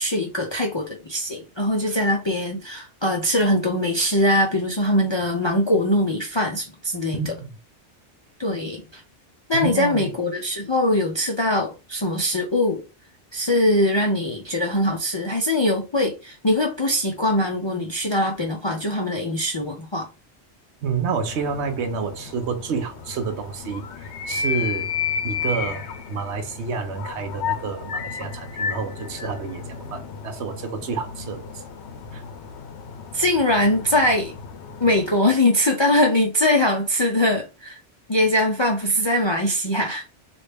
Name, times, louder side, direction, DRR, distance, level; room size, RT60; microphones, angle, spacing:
voice 1, 0.0-7.3 8.4-9.0 9.5-12.8 13.3-20.1 33.1-34.3 34.8-37.8 38.1-40.0, left 1 dB, 40° left, 0.4 m, -22 dB
voice 2, 7.1-7.5 9.5-10.1 20.8-24.9 25.2-25.8 26.1-31.5 32.1-32.2, right 5 dB, 75° right, 1.0 m, -29 dB
sound 1, 21.2-35.2, left 6 dB, 75° left, 0.9 m, -33 dB
3.2 x 2.5 x 3.3 m
omnidirectional pair, 1.2 m